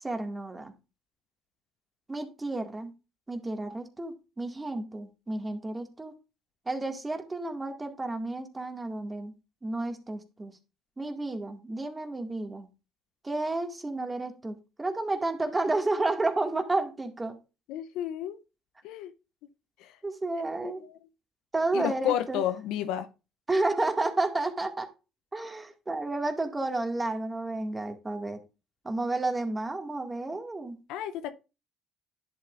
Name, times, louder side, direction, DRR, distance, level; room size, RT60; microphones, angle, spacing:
voice 1, 0.0-0.7 2.1-2.9 3.3-6.1 6.7-9.3 9.6-10.5 11.0-12.7 13.2-17.4 20.0-20.8 21.5-22.4 23.5-24.9 25.3-28.4 28.8-30.8, right 2 dB, 20° right, 2.0 m, -31 dB
voice 2, 17.7-18.4 18.8-19.1 19.8-20.0 20.6-21.0 21.7-23.1 30.9-31.3, left 11 dB, 75° left, 0.7 m, -31 dB
10.5 x 7.7 x 2.5 m
hypercardioid pair, 65°, 0 cm